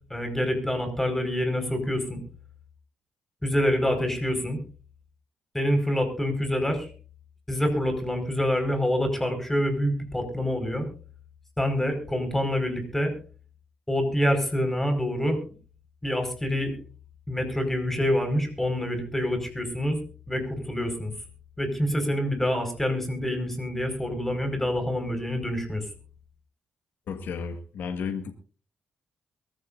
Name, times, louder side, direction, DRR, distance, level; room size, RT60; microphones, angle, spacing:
voice 1, 0.1-2.2 3.4-4.6 5.5-6.9 7.5-10.9 11.6-13.1 13.9-15.4 16.0-16.8 17.3-20.0 20.3-21.1 21.6-25.9, equal, 10° left, 6 dB, 5.1 m, -26 dB
voice 2, 27.1-28.3, left 6 dB, 75° left, 6 dB, 1.7 m, -33 dB
23.0 x 14.0 x 2.6 m, 0.38 s
cardioid pair, 85°, 3 cm